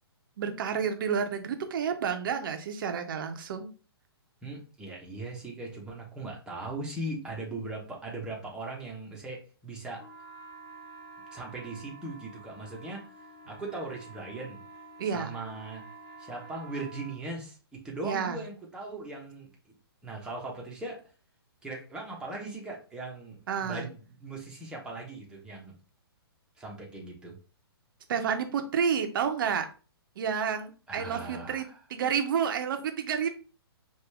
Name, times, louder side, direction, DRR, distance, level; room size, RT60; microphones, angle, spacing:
voice 1, 0.4-3.7 15.0-15.3 18.0-18.4 23.5-23.9 28.1-29.7 30.2-31.6 31.9-33.3, right 7 dB, 55° right, 6 dB, 0.8 m, -30 dB
voice 2, 4.4-10.0 11.3-13.1 13.5-14.6 15.0-15.8 16.2-19.7 20.0-21.0 21.6-25.7 26.6-27.4 30.9-31.8, right 2 dB, 5° right, -2 dB, 1.1 m, -39 dB
sound 1, 10.0-17.2, right 3 dB, 65° left, 1.0 m, -49 dB
5.1 x 2.6 x 3.4 m, 0.35 s
hypercardioid pair, 135°, 13 cm